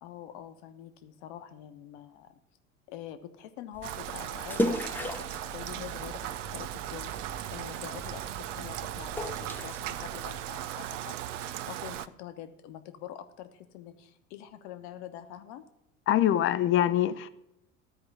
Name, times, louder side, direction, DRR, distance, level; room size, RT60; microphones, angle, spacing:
voice 1, 0.0-2.4 2.9-15.6, left 11 dB, 55° left, 1.1 m, -45 dB
sound 1, 3.7-10.6, left 1 dB, 5° left, 0.9 m, -37 dB
Rain, 3.8-12.1, right 12 dB, 65° right, 0.6 m, -38 dB
sound 2, 5.6-11.5, right 8 dB, 15° right, 0.5 m, -49 dB
voice 2, 16.1-17.3, left 11 dB, 30° left, 0.6 m, -24 dB
14.0 x 4.9 x 7.6 m
figure-of-eight pair, 70°, 41 cm